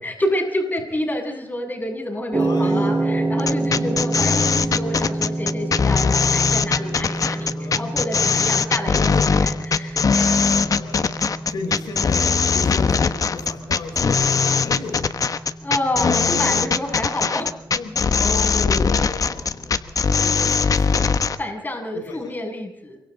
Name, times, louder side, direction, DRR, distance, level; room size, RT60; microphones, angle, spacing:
voice 1, 0.0-10.6 15.6-17.5 21.4-23.0, left 1 dB, 25° left, 2 dB, 7.4 m, -28 dB
voice 2, 2.3-3.3 3.6-4.5 7.1-7.9 10.3-11.1 11.5-15.5 17.7-21.3 21.9-22.3, left 4 dB, 90° left, 2 dB, 6.3 m, -35 dB
sound 1, 2.3-20.6, right 2 dB, 25° right, 1.9 m, -29 dB
sound 2, 3.4-21.4, left 5 dB, 55° left, 1.2 m, -20 dB
28.5 x 24.5 x 4.0 m, 0.71 s
cardioid pair, 70°, 7 cm